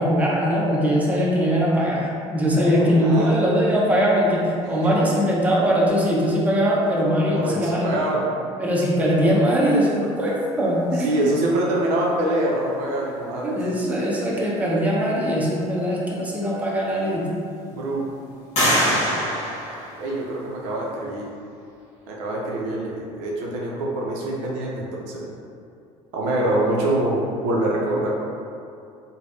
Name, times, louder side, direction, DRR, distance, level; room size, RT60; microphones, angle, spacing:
voice 1, 0.0-8.0 8.6-11.2 13.4-17.3, equal, 10° right, -5 dB, 0.7 m, -21 dB
voice 2, 2.7-3.4 7.4-8.3 11.0-13.6 17.7-18.1 19.9-21.3 22.1-25.3 26.1-28.1, right 1 dB, 70° right, -3 dB, 0.5 m, -25 dB
sound 1, 16.3-16.4 17.0-17.6 18.5-20.5, equal, 45° left, 1.2 m, -24 dB
3.2 x 2.1 x 2.6 m, 2.5 s
hypercardioid pair, 70°, 17 cm